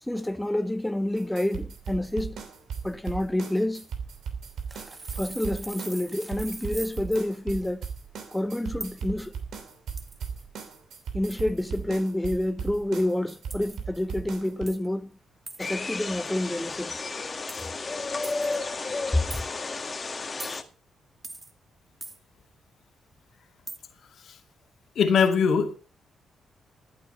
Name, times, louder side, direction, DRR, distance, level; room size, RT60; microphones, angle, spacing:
voice 1, 0.0-2.4 2.8-3.9 5.1-7.9 8.3-9.3 11.1-15.1 15.6-17.0, left 1 dB, 10° left, 0.8 m, -28 dB
sound 1, 1.2-14.6, right 6 dB, 80° right, 3.0 m, -37 dB
sound 2, 4.7-7.3 8.8-9.0 10.0-10.4 11.3-11.6 13.5-13.8 14.7-14.9 15.5-15.7 17.5-17.7 18.2-18.6 19.3-19.5 20.4-20.6 21.2-21.5 22.0-22.2 23.7-23.8, right 3 dB, 30° right, 1.8 m, -41 dB
sound 3, 15.6-20.6, left 3 dB, 35° left, 1.7 m, -32 dB
voice 2, 25.0-25.8, left 6 dB, 70° left, 2.3 m, -21 dB
14.5 x 8.6 x 5.6 m
cardioid pair, 75°, 0 cm